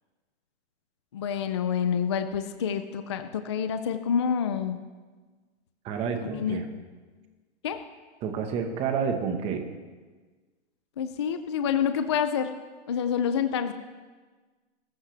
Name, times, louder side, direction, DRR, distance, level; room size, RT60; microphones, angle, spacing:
voice 1, 1.1-4.8 6.2-6.7 7.6-7.8 11.0-12.5 12.9-13.7, left 7 dB, 25° left, 9 dB, 0.4 m, -27 dB
voice 2, 5.8-6.6 8.2-9.6, right 6 dB, 15° right, 5 dB, 1.3 m, -29 dB
24.0 x 14.5 x 3.3 m, 1.4 s
hypercardioid pair, 170°, 34 cm